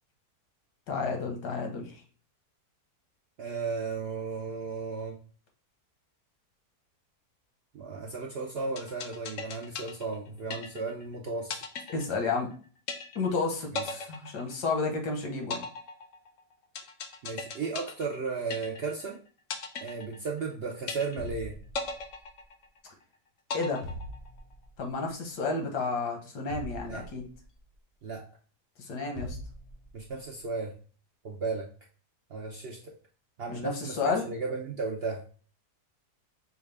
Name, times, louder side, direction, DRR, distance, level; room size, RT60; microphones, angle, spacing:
voice 1, 0.9-1.9 11.9-12.5 13.2-15.7 23.5-23.8 24.8-27.2 28.8-29.4 33.5-34.3, left 4 dB, 90° left, 3 dB, 1.6 m, -31 dB
voice 2, 3.4-5.2 7.7-11.6 13.7-13.8 17.2-19.2 19.8-21.6 26.8-27.0 28.0-28.2 29.9-30.7 31.2-31.7 32.3-32.9 33.4-35.2, right 4 dB, 65° right, -1 dB, 0.6 m, -34 dB
sound 1, 8.8-11.1 11.5-12.5 12.9-13.4 13.7-15.0 15.5-19.1 19.5-20.5 20.9-21.4 21.7-23.0 23.5-24.5, left 4 dB, 65° left, 0.8 m, -38 dB
sound 2, 21.2-22.3 23.8-24.8 26.5-27.6 29.2-30.1, equal, 30° left, 0.6 m, -42 dB
5.6 x 2.3 x 3.3 m, 0.41 s
omnidirectional pair, 1.7 m